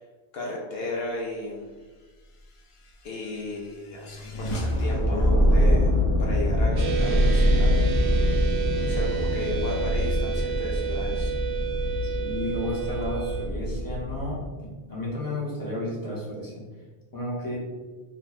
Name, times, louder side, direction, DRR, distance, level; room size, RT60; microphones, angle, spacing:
voice 1, 0.3-1.7 3.0-5.9 6.2-7.7 8.8-11.4, left 2 dB, 70° left, -2 dB, 0.8 m, -34 dB
sound 1, 2.4-8.0, equal, 55° left, 0.3 m, -34 dB
sound 2, 4.7-14.4, left 1 dB, 25° right, 0.3 m, -24 dB
sound 3, 6.8-13.5, right 8 dB, 65° right, 0.7 m, -31 dB
voice 2, 12.0-16.5 17.1-17.6, left 1 dB, 20° left, -5 dB, 0.8 m, -33 dB
3.0 x 2.2 x 3.9 m, 1.3 s
omnidirectional pair, 1.1 m